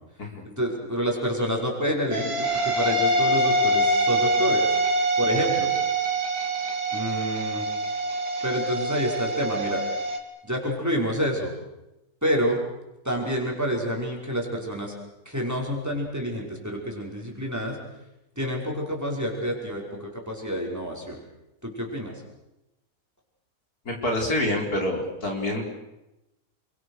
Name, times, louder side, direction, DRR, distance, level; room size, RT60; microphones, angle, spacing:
voice 1, 0.4-4.7 5.2-5.7 6.9-7.7 8.4-9.8 10.4-11.5 12.2-12.6 13.0-14.9 15.3-17.8 18.4-21.2 21.6-22.1, equal, 10° right, -1 dB, 5.5 m, -28 dB
sound 1, 2.1-10.2, right 1 dB, 70° right, 3.3 m, -25 dB
voice 2, 23.8-25.7, left 1 dB, 70° left, 1 dB, 5.0 m, -27 dB
29.5 x 23.5 x 6.6 m, 0.94 s
omnidirectional pair, 1.7 m